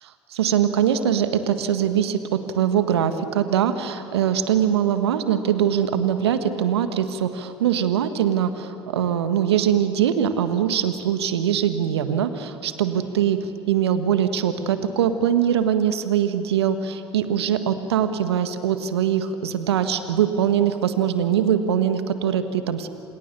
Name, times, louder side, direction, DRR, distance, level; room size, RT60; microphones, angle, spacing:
voice 1, 0.0-22.9, right 9 dB, 80° right, 10 dB, 1.7 m, -22 dB
29.0 x 28.5 x 6.9 m, 2.7 s
hypercardioid pair, 60°, 13 cm